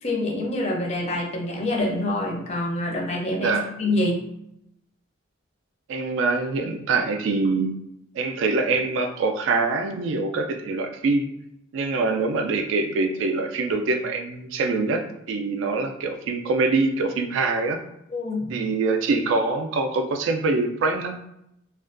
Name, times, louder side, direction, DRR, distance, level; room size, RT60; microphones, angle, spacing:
voice 1, 0.0-4.2 18.1-18.6, left 1 dB, 35° left, 1 dB, 0.4 m, -26 dB
voice 2, 3.3-3.7 5.9-7.8 8.1-11.3 11.7-17.8 18.5-21.2, right 3 dB, 70° right, 5 dB, 0.3 m, -24 dB
2.4 x 2.2 x 2.4 m, 0.80 s
head